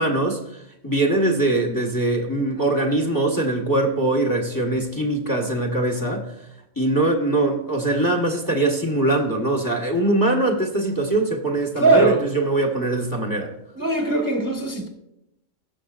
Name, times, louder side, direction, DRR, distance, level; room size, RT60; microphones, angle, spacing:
voice 1, 0.0-6.3 6.8-13.5, right 2 dB, 15° left, 1 dB, 1.4 m, -22 dB
voice 2, 11.8-12.2 13.7-14.9, right 3 dB, 15° right, 1 dB, 1.3 m, -19 dB
17.0 x 7.1 x 2.5 m, 0.83 s
omnidirectional pair, 1.4 m